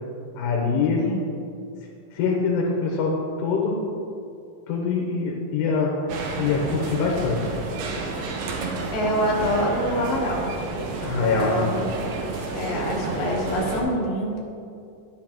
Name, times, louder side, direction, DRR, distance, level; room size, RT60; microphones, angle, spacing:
voice 1, 0.4-1.0 2.1-3.9 4.7-5.9 6.4-7.5 11.1-11.7, left 4 dB, 85° left, -1 dB, 2.8 m, -24 dB
sound 1, 6.1-13.8, right 3 dB, 75° right, 2.1 m, -31 dB
voice 2, 8.9-10.5 11.0-11.9 12.5-14.4, equal, 70° left, -3 dB, 2.5 m, -26 dB
9.9 x 6.5 x 2.9 m, 2.5 s
omnidirectional pair, 4.8 m